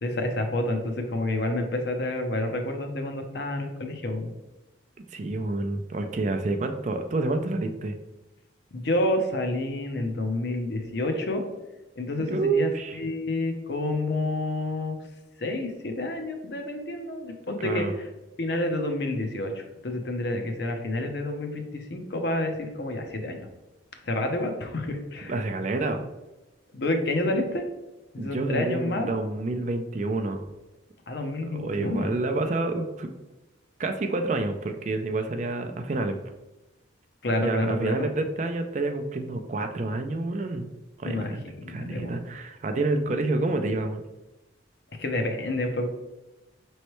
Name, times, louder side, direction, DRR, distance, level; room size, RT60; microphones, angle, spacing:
voice 1, 0.0-4.3 8.7-11.4 12.0-15.0 15.4-18.0 18.4-23.4 24.0-25.3 26.7-27.6 28.1-29.1 31.1-32.1 37.2-38.1 41.0-42.2 45.0-45.9, left 1 dB, 60° left, 5 dB, 0.7 m, -29 dB
voice 2, 5.1-7.9 12.2-13.0 17.6-17.9 25.3-26.0 28.2-30.4 31.5-33.1 33.8-36.2 37.4-40.7 41.0-44.0, right 2 dB, 40° right, 6 dB, 0.4 m, -28 dB
5.3 x 3.2 x 3.0 m, 1.0 s
head